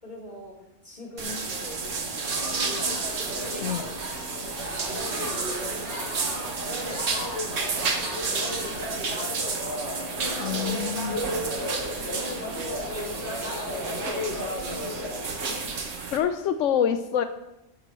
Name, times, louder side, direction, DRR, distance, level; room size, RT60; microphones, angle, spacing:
voice 1, 0.0-3.5 4.9-7.2 7.5-9.6 10.3-13.1 15.4-15.7, left 1 dB, 35° left, -4 dB, 3.8 m, -46 dB
sound 1, 1.2-16.2, right 4 dB, 90° right, 1.6 m, -32 dB
sound 2, 2.1-15.7, left 1 dB, 65° right, 3.3 m, -34 dB
voice 2, 10.4-11.2 16.1-17.2, left 8 dB, 90° left, 9 dB, 1.0 m, -26 dB
13.5 x 12.0 x 3.1 m, 0.92 s
omnidirectional pair, 1.3 m